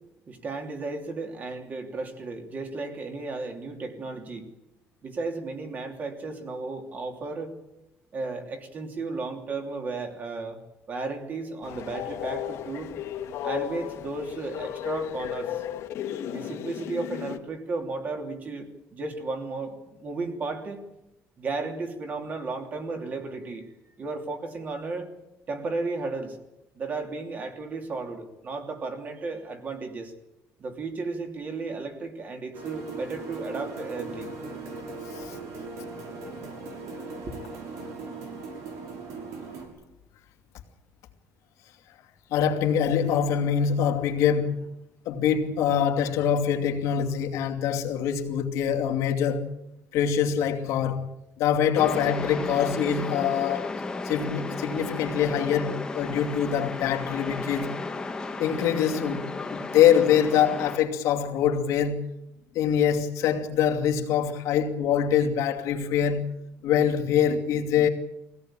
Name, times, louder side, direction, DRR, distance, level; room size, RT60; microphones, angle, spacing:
voice 1, 0.3-4.5 5.0-7.5 8.1-10.6 10.9-12.9 13.4-15.6 16.3-20.8 21.4-25.1 25.5-26.4 26.7-30.1 30.6-34.3 37.2-37.3, right 3 dB, 35° right, 3.1 m, -34 dB
Train, 11.6-17.4, left 10 dB, 65° left, 1.9 m, -34 dB
Delayed Drops, 32.5-39.7, right 3 dB, 80° right, 6.5 m, -39 dB
voice 2, 42.3-44.6 45.1-49.5 49.9-51.1 51.4-53.7 54.0-57.7 58.4-62.0 62.5-66.3 66.6-67.9, left 8 dB, 85° left, 2.6 m, -24 dB
sound 1, 51.7-60.8, left 3 dB, 15° left, 1.4 m, -34 dB
23.0 x 17.0 x 8.9 m
cardioid pair, 160°, 5 cm